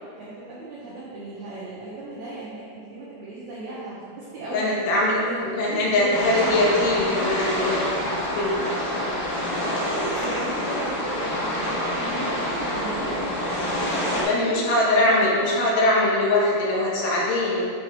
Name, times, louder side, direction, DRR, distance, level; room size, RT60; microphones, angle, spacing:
voice 1, 0.2-4.7 5.3-6.2 9.9-14.7 15.0-15.5, right 2 dB, 65° right, -8 dB, 2.2 m, -36 dB
voice 2, 4.5-5.2 5.6-8.8 14.2-17.7, left 1 dB, 90° left, -5 dB, 3.2 m, -22 dB
sound 1, 6.1-14.2, equal, 45° left, 1.8 m, -27 dB
8.0 x 4.6 x 4.6 m, 2.2 s
omnidirectional pair, 4.0 m